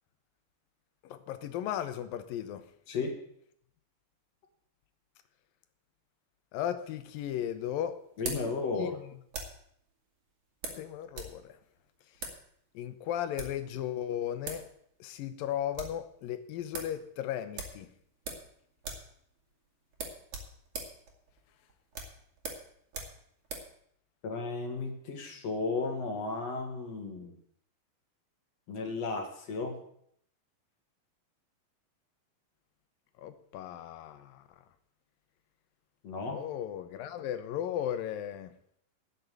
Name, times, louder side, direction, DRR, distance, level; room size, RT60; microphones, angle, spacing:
voice 1, 1.0-2.7 6.5-8.0 8.8-8.9 10.8-11.5 12.8-14.7 15.0-17.9 33.2-34.4 36.3-38.5, left 10 dB, 80° left, 2.6 m, -36 dB
sound 1, 6.8-9.7 10.6-11.4 11.6-11.7 12.1-12.4 13.2-13.6 14.2-14.3 14.4-14.7 15.0-15.1 15.4-16.0 16.4-16.5 16.7-17.0 17.5-18.5 18.8-19.1 19.4-19.5 19.9-23.7, right 4 dB, 50° right, 3.1 m, -41 dB
voice 2, 8.2-9.0 24.2-27.4 28.7-29.8 36.0-36.4, left 3 dB, 50° left, 2.8 m, -34 dB
12.0 x 6.9 x 9.0 m
omnidirectional pair, 4.1 m